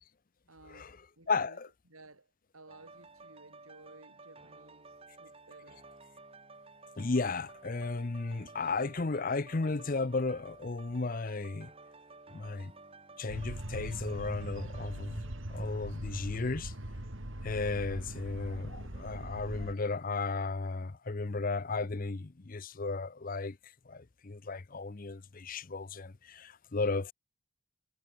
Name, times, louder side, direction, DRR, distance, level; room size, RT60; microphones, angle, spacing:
voice 1, 0.5-5.8, right 2 dB, 80° right, 6.2 m, -57 dB
voice 2, 1.3-1.7 7.0-11.7 12.3-12.7 13.2-16.7 17.4-23.6 23.9-27.1, left 3 dB, 40° left, 0.6 m, -34 dB
sound 1, 2.7-16.4 16.8-17.0, right 3 dB, 25° right, 3.7 m, -54 dB
sound 2, 13.3-19.7, right 1 dB, 60° right, 3.0 m, -41 dB
head